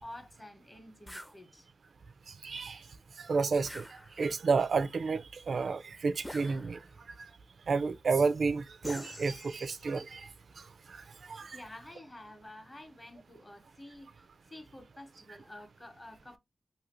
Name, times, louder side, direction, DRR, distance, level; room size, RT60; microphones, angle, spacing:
voice 1, 0.0-1.7 11.5-16.4, left 1 dB, 25° left, 0.8 m, -50 dB
sound 1, 1.1-1.4 3.6-4.5 6.2-7.0 8.8-9.9, equal, 5° left, 0.4 m, -46 dB
voice 2, 2.4-2.8 3.2-3.8 4.2-6.8 7.7-10.3 10.9-11.0 11.3-11.6, right 4 dB, 70° right, 0.3 m, -30 dB
2.8 x 2.5 x 2.9 m
cardioid pair, 70°, 0 cm